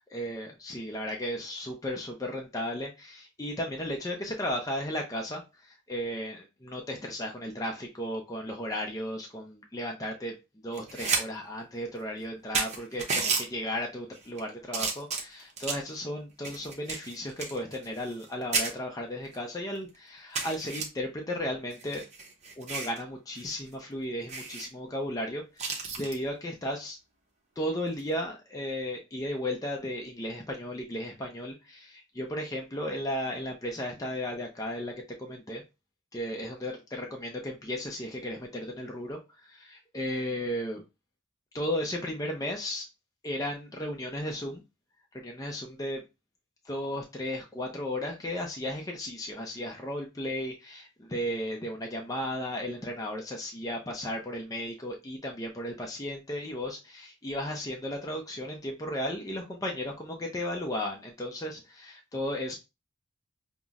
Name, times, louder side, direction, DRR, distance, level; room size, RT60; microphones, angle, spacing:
voice 1, 0.0-10.3 10.6-22.0 22.6-27.0 27.6-34.9 35.2-35.6 36.1-40.8 41.5-42.9 43.2-44.6 45.1-46.0 46.6-62.5, left 1 dB, 15° left, 1 dB, 0.4 m, -35 dB
sound 1, 10.7-11.2 11.6-11.7 12.2-12.3 12.5-13.4 14.1-14.4 14.7-15.9 16.4-18.3 18.5-18.7 19.3-19.4 19.7-19.8 20.3-20.8 21.7-23.0 23.4-23.5 23.8-23.9 24.3-24.7 25.6-26.2 27.9-28.1, right 4 dB, 30° right, 0.6 m, -32 dB
5.4 x 2.0 x 2.3 m, 0.26 s
head